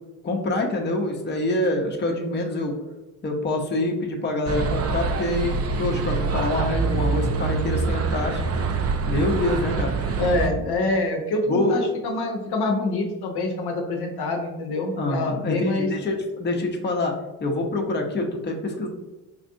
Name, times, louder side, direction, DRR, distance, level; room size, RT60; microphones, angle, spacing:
voice 1, 0.2-2.7 3.2-8.4 9.1-10.0 11.5-11.8 15.0-17.1 17.4-18.9, left 2 dB, 25° left, 1 dB, 0.7 m, -26 dB
sound 1, 4.5-10.5, right 4 dB, 35° right, 0.5 m, -25 dB
voice 2, 10.2-15.9, left 2 dB, 55° left, 2 dB, 0.7 m, -26 dB
4.4 x 2.5 x 2.5 m, 1.1 s
hypercardioid pair, 55°, 45 cm